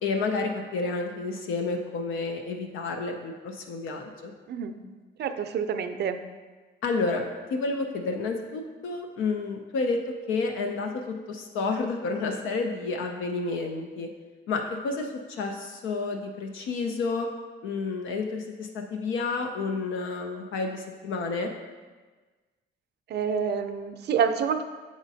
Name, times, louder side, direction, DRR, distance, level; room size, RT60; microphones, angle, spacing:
voice 1, 0.0-4.3 6.8-10.0 10.3-14.1 14.5-17.3 17.6-21.5, left 3 dB, 85° left, 3 dB, 0.6 m, -30 dB
voice 2, 5.2-6.2 23.1-24.6, right 7 dB, 60° right, 8 dB, 0.5 m, -27 dB
7.2 x 5.0 x 2.7 m, 1.3 s
cardioid pair, 90°, 20 cm